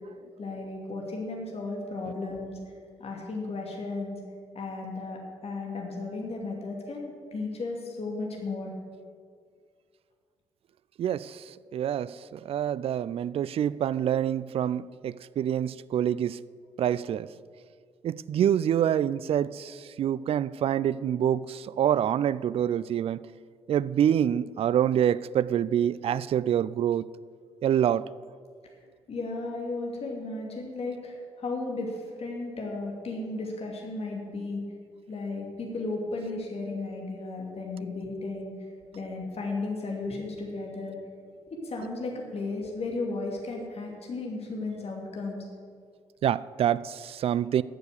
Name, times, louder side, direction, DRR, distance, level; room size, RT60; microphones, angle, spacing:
voice 1, 0.4-2.6 3.0-4.2 4.5-8.7 29.1-34.6 35.1-38.5 38.9-41.0 41.5-45.4, left 3 dB, 50° left, 2.6 m, -34 dB
voice 2, 11.0-11.4 11.7-16.4 16.8-17.3 18.0-23.2 23.7-27.1 27.6-28.1 46.2-47.6, right 10 dB, 45° right, 0.3 m, -26 dB
12.5 x 7.0 x 6.6 m
hypercardioid pair, 45°, 14 cm